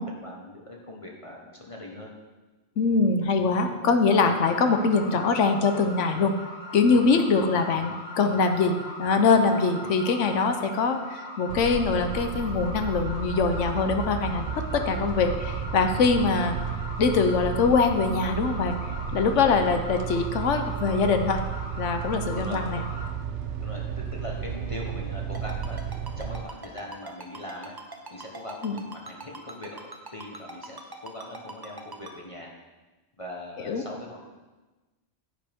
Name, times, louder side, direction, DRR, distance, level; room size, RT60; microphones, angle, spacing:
voice 1, 0.0-2.1 7.4-7.6 9.8-9.9 19.3-19.5 22.4-22.6 23.6-23.8 24.1-25.8 26.2-27.7 28.1-29.8 30.1-32.5 33.2-34.3, left 1 dB, 30° left, -2 dB, 1.3 m, -40 dB
voice 2, 2.8-6.3 6.7-16.6 17.0-18.8 19.1-21.4 21.8-22.8 28.6-28.8 33.6-33.8, left 4 dB, 90° left, 7 dB, 1.2 m, -23 dB
sound 1, 4.0-23.1, left 1 dB, 70° left, 2.4 m, -40 dB
sound 2, 11.5-26.4, right 7 dB, 75° right, 1.0 m, -33 dB
Ringtone, 25.3-32.1, right 2 dB, 20° right, 0.8 m, -41 dB
10.0 x 9.1 x 3.6 m, 1.2 s
omnidirectional pair, 1.2 m